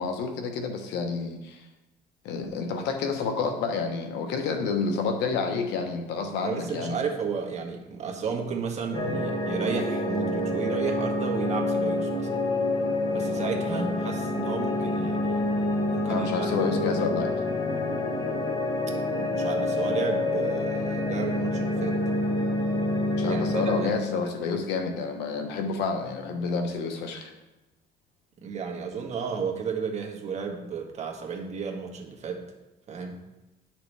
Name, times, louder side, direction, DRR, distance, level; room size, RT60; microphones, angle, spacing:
voice 1, 0.0-1.6 2.2-7.0 16.1-17.4 23.2-27.3, left 4 dB, 90° left, 5 dB, 1.1 m, -29 dB
voice 2, 6.4-12.3 13.1-15.5 15.9-16.5 19.1-22.0 23.2-23.9 28.4-32.4 32.9-33.2, right 5 dB, 40° right, 1 dB, 1.5 m, -33 dB
sound 1, 8.9-23.8, left 2 dB, 25° left, 1.4 m, -27 dB
10.0 x 5.9 x 3.4 m, 1.0 s
cardioid pair, 110°, 17 cm